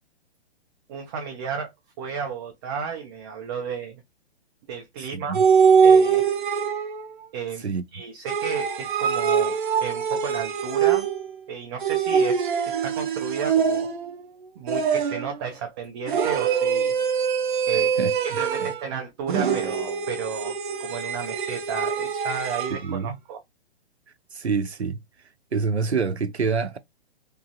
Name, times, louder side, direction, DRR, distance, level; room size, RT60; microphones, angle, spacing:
voice 1, 0.9-1.7 2.0-4.0 4.7-5.4 5.8-6.3 7.3-11.1 11.5-13.9 14.6-16.9 17.7-23.4, right 6 dB, 25° right, 0.5 m, -33 dB
voice 2, 5.1-5.4 7.6-7.9 17.7-18.7 22.7-23.2 24.3-25.0 25.5-26.8, right 5 dB, 90° right, 0.6 m, -27 dB
sound 1, 5.3-7.1 8.3-11.3 11.8-14.2 14.7-15.4 16.1-18.9 19.3-22.8, right 6 dB, 50° right, 0.9 m, -23 dB
3.8 x 3.1 x 2.3 m
figure-of-eight pair, 120°, 32 cm